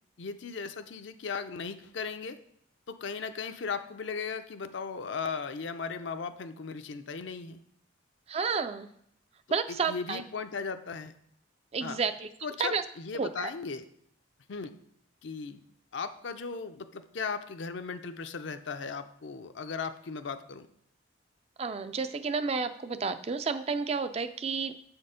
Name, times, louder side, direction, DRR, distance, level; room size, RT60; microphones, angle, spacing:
voice 1, 0.2-2.4 2.9-7.6 9.7-11.1 11.8-12.0 12.4-13.8 14.5-14.7 15.2-15.6 15.9-20.7, left 5 dB, 65° left, 9 dB, 0.5 m, -37 dB
voice 2, 8.3-8.9 9.5-10.2 11.7-12.3 12.6-12.8 13.1-13.5 21.6-24.7, right 5 dB, 30° right, 11 dB, 0.3 m, -31 dB
7.4 x 4.4 x 5.0 m, 0.70 s
head